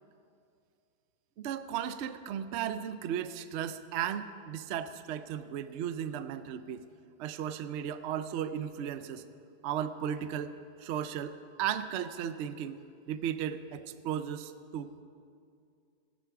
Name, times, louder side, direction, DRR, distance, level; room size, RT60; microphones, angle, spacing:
voice 1, 1.4-6.8 7.2-9.2 9.6-12.8 13.1-15.0, right 9 dB, 70° right, 11 dB, 0.6 m, -35 dB
16.0 x 8.3 x 5.8 m, 2.4 s
omnidirectional pair, 1.7 m